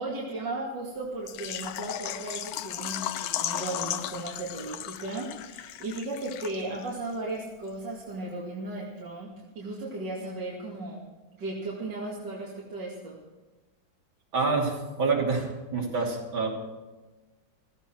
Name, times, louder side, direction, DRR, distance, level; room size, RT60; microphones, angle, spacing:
voice 1, 0.0-11.0 11.4-13.2, right 2 dB, 60° right, -5 dB, 3.0 m, -36 dB
Water / Liquid, 1.3-6.9 7.1-7.2 7.7-7.8, left 12 dB, 70° left, 0.9 m, -35 dB
voice 2, 14.3-16.5, right 4 dB, 80° right, -1 dB, 3.7 m, -27 dB
16.5 x 15.5 x 4.6 m, 1.2 s
omnidirectional pair, 2.1 m